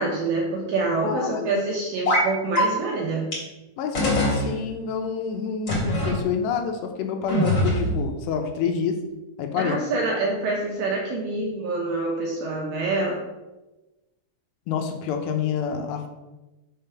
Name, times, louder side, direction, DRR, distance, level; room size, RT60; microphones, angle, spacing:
voice 1, 0.0-3.3 9.5-13.2, right 3 dB, 75° right, -2 dB, 2.2 m, -26 dB
voice 2, 1.0-1.5 3.8-9.0 9.4-9.8 14.7-16.1, left 6 dB, 80° left, 4 dB, 2.8 m, -27 dB
sound 1, 2.0-2.3 2.5-2.6 3.3-3.4 3.9-4.4 5.7-6.1 7.3-8.0, left 1 dB, 35° left, 2.1 m, -22 dB
6.5 x 3.6 x 5.6 m, 1.1 s
omnidirectional pair, 5.0 m